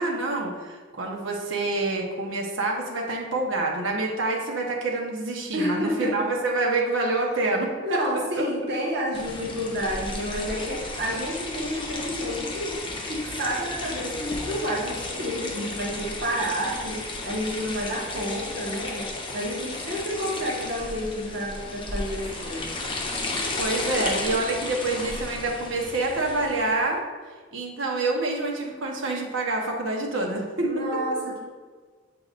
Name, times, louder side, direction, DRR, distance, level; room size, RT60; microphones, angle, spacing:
voice 1, 0.0-8.4 23.6-27.0 27.5-30.9, right 2 dB, 80° right, 0 dB, 1.1 m, -27 dB
voice 2, 5.5-6.3 7.3-12.8 13.1-22.7 30.6-31.4, equal, 55° right, -4 dB, 1.5 m, -30 dB
sound 1, 9.1-26.8, left 2 dB, 25° left, 0.8 m, -34 dB
7.8 x 4.7 x 2.5 m, 1.4 s
head